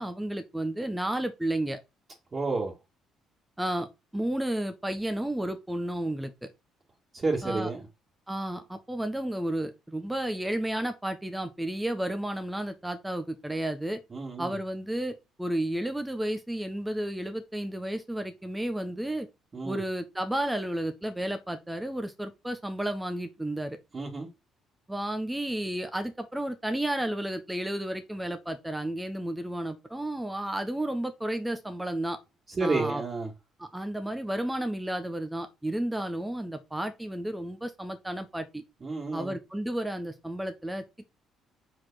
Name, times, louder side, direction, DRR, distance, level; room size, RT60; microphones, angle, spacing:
voice 1, 0.0-1.8 3.6-6.5 7.4-7.7 8.3-14.0 14.4-19.3 19.6-23.8 24.9-32.2 32.6-33.0 33.6-38.6 39.1-40.8, right 1 dB, 10° right, 1.4 m, -32 dB
voice 2, 2.3-2.7 7.1-7.8 14.1-14.6 19.5-19.8 23.9-24.3 32.6-33.3 38.8-39.3, right 3 dB, 35° right, 2.5 m, -30 dB
5.8 x 4.9 x 4.3 m
hypercardioid pair, 50°, 0 cm